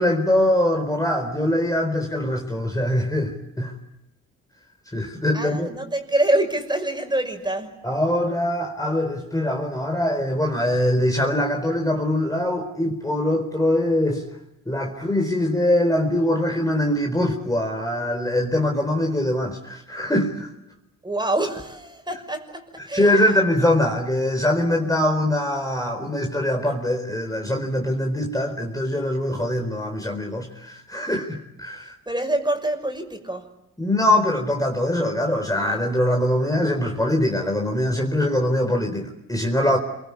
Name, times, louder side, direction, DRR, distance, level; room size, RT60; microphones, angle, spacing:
voice 1, 0.0-3.7 4.9-5.7 7.8-14.2 14.7-20.5 22.9-31.9 33.8-39.8, left 1 dB, 10° left, 4.3 m, -23 dB
voice 2, 5.3-7.8 21.0-23.4 31.8-33.5 39.7-39.8, right 1 dB, 15° right, 6.0 m, -26 dB
27.5 x 24.0 x 8.4 m
cardioid pair, 70°, 34 cm